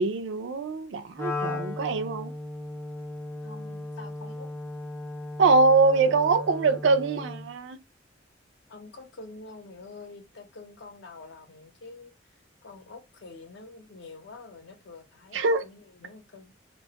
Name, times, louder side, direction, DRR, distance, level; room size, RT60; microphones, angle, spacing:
voice 1, 0.0-2.3 5.4-7.8 15.3-15.6, right 3 dB, 85° right, 0.4 m, -23 dB
Wind instrument woodwind instrument, 1.2-7.5, left 2 dB, 15° left, 0.3 m, -36 dB
voice 2, 3.4-4.5 8.7-16.5, left 3 dB, 75° left, 0.6 m, -47 dB
2.2 x 2.0 x 2.8 m
head